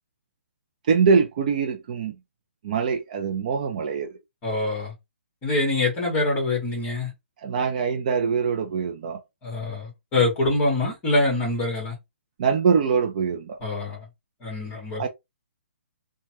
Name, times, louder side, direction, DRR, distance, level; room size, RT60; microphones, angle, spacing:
voice 1, 0.9-2.2 2.6-4.1 7.4-9.2 12.4-13.6 15.0-15.1, right 5 dB, 35° right, 0.4 m, -23 dB
voice 2, 4.4-4.9 5.4-7.1 9.4-11.9 13.6-14.1 14.4-15.0, left 2 dB, 15° left, 1.5 m, -25 dB
3.2 x 2.2 x 2.8 m
hypercardioid pair, 165°, 7 cm